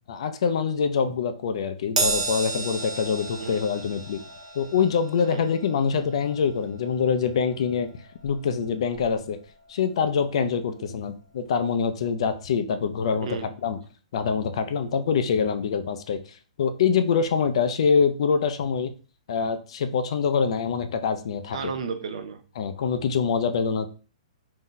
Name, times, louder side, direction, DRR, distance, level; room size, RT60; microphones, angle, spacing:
voice 1, 0.1-4.2 4.5-7.9 8.2-9.4 9.7-13.8 14.1-16.2 16.6-18.9 19.3-21.7 22.6-23.9, left 6 dB, 50° left, 8 dB, 0.3 m, -25 dB
Crash cymbal, 2.0-8.6 8.9-9.2 10.2-10.3, right 4 dB, 85° right, 0.9 m, -33 dB
voice 2, 3.4-3.8 5.3-5.5 10.8-10.9 13.2-13.5 21.5-22.4, right 6 dB, 55° right, 8 dB, 0.4 m, -34 dB
2.6 x 2.1 x 3.7 m, 0.37 s
hypercardioid pair, 170°, 4 cm